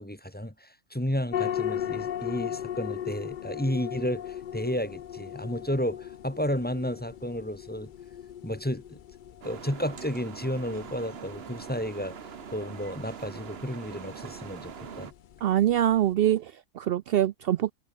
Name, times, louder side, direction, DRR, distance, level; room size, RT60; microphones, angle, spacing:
voice 1, 0.0-7.9 8.4-9.0 9.4-15.1, equal, 5° left, 2.1 m, -32 dB
sound 1, 1.3-16.1, left 10 dB, 80° left, 0.4 m, -38 dB
sound 2, 9.4-15.1, right 7 dB, 50° right, 1.1 m, -43 dB
voice 2, 15.4-17.7, right 11 dB, 75° right, 0.5 m, -24 dB
omnidirectional pair, 1.5 m